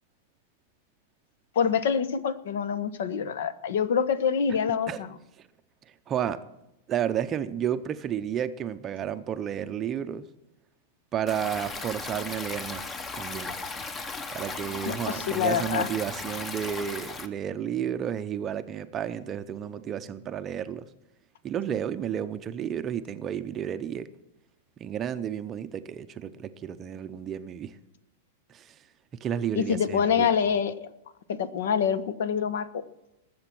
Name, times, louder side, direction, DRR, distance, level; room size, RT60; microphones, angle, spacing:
voice 1, 1.5-5.1 14.8-15.9 29.5-30.9 31.3-32.7, left 7 dB, 65° left, 14 dB, 1.2 m, -26 dB
voice 2, 6.1-6.4 6.9-10.3 11.1-13.6 14.3-20.9 21.4-24.1 24.8-27.8 28.5-28.7 29.2-30.3, right 9 dB, 20° right, 10 dB, 0.6 m, -32 dB
Stream, 11.3-17.3, left 3 dB, 15° left, 0.9 m, -36 dB
20.0 x 7.9 x 6.0 m, 0.88 s
supercardioid pair, 165°, 0 cm